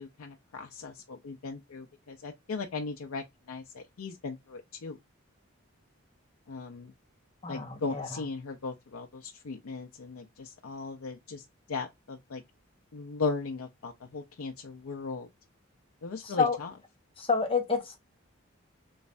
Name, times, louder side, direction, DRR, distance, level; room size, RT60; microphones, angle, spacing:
voice 1, 0.0-5.0 6.5-6.9 7.5-11.4 11.7-12.4 12.9-15.3 16.0-16.7, left 4 dB, 85° left, 0.5 m, -37 dB
voice 2, 7.4-8.2 16.2-16.6 17.2-18.0, left 5 dB, 25° left, 0.8 m, -29 dB
3.2 x 3.2 x 2.4 m
head